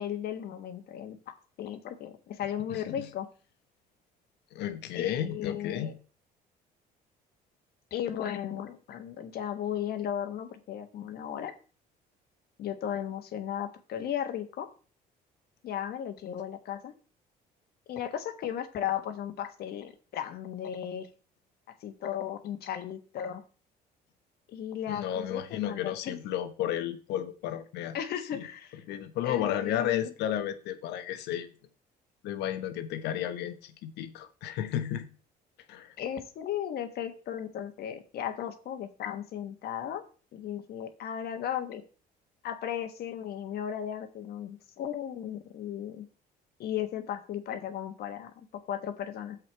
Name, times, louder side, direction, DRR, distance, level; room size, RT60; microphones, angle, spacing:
voice 1, 0.0-3.3 4.9-5.9 7.9-11.5 12.6-14.7 15.6-16.9 17.9-21.1 21.8-23.4 24.5-26.2 27.9-28.8 29.2-30.1 36.0-40.0 40.3-41.8 42.4-46.1 46.6-49.4, left 10 dB, 65° left, 1.4 m, -35 dB
voice 2, 2.7-3.1 4.5-5.9 24.9-27.9 28.3-28.4 28.9-31.5 32.2-35.1 35.7-35.9, left 11 dB, 85° left, 1.2 m, -33 dB
9.1 x 7.7 x 4.6 m
cardioid pair, 110°, 17 cm